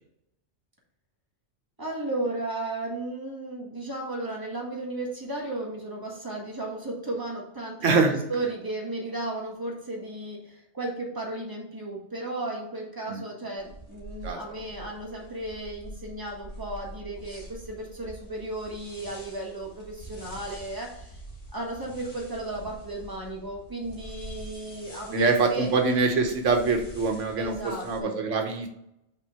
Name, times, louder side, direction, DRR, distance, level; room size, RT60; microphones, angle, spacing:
voice 1, 1.8-21.2 21.5-25.7 27.4-28.2, right 2 dB, 20° right, -3 dB, 1.8 m, -34 dB
voice 2, 7.8-8.2 13.1-13.2 14.2-14.4 25.1-28.7, right 4 dB, 90° right, 4 dB, 1.3 m, -24 dB
sound 1, 13.6-28.0, right 1 dB, 65° left, 2.4 m, -45 dB
5.7 x 4.3 x 5.6 m, 0.79 s
omnidirectional pair, 1.2 m